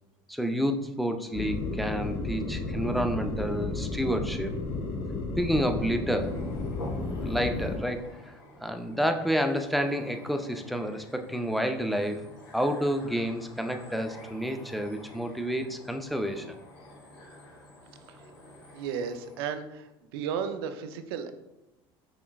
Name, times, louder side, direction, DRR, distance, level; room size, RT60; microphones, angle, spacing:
voice 1, 0.3-4.5 5.4-6.4 7.2-8.0 8.6-12.2 12.5-16.5, equal, ahead, 5 dB, 0.5 m, -29 dB
sound 1, 1.3-7.8, left 3 dB, 55° left, 1.0 m, -33 dB
sound 2, 5.6-19.5, left 1 dB, 90° left, 1.4 m, -49 dB
voice 2, 18.7-21.3, right 7 dB, 80° right, 8 dB, 0.5 m, -34 dB
5.7 x 3.0 x 2.3 m, 0.96 s
hypercardioid pair, 80°, 13 cm